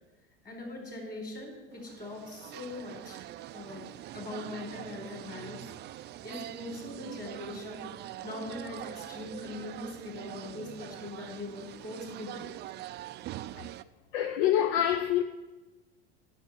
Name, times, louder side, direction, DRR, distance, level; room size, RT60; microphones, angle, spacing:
voice 1, 0.4-3.2 3.5-3.8 4.1-5.6 6.2-7.9 8.2-12.6, left 2 dB, 25° left, 4.5 m, -41 dB
sound 1, 1.7-13.8, right 14 dB, 30° right, 0.4 m, -43 dB
voice 2, 14.1-15.2, left 11 dB, 60° left, 0.6 m, -26 dB
9.2 x 7.3 x 8.6 m
hypercardioid pair, 80°, 35 cm